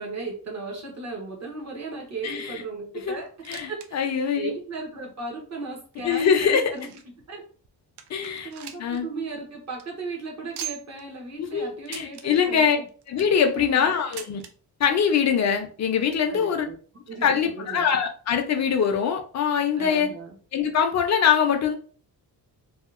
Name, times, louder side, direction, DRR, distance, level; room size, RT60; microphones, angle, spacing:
voice 1, 0.0-4.1 4.4-6.9 7.3-7.4 8.4-12.8 13.5-13.9 16.3-16.8 17.1-17.9 19.8-20.3, right 3 dB, 40° right, -1 dB, 0.9 m, -36 dB
voice 2, 2.2-2.6 2.9-3.2 3.5-4.5 6.0-6.7 8.1-8.5 8.8-9.1 11.4-12.8 13.1-14.4 14.8-16.7 17.2-20.1 20.5-21.7, left 7 dB, 45° left, 6 dB, 0.5 m, -23 dB
sound 1, 3.3-3.9 4.2-4.3 4.9-5.0 5.8-7.2 7.6-7.7 8.0-9.0 9.3-9.4 9.7-9.8 10.5-11.0 11.8-12.3 12.9-13.4 14.1-14.5 15.5-15.6 15.8-15.9 16.7-16.8, right 9 dB, 90° right, 0.5 m, -40 dB
2.7 x 2.3 x 2.4 m, 0.41 s
wide cardioid pair, 160°, 39 cm